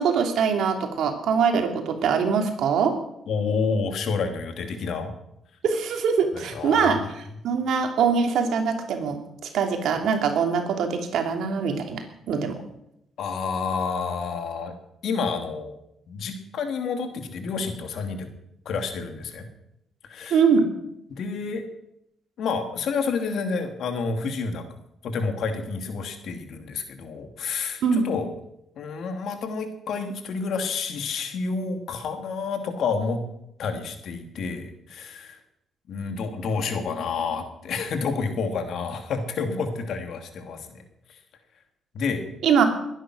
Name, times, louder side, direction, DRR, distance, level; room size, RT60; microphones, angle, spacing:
voice 1, 0.0-3.0 5.6-7.0 7.4-9.2 9.5-12.0 12.3-12.6 20.3-20.7 27.8-28.1 42.4-42.6, right 6 dB, 75° right, 4 dB, 2.9 m, -22 dB
voice 2, 3.3-5.1 6.3-7.0 13.2-14.7 15.0-15.8 16.1-18.3 18.6-19.5 20.0-20.4 21.1-21.6 22.4-24.6 25.0-28.3 28.8-33.2 33.6-35.4 35.9-40.8 41.9-42.3, left 5 dB, 70° left, 6 dB, 2.8 m, -29 dB
21.5 x 10.0 x 6.4 m, 0.80 s
cardioid pair, 90°, 0 cm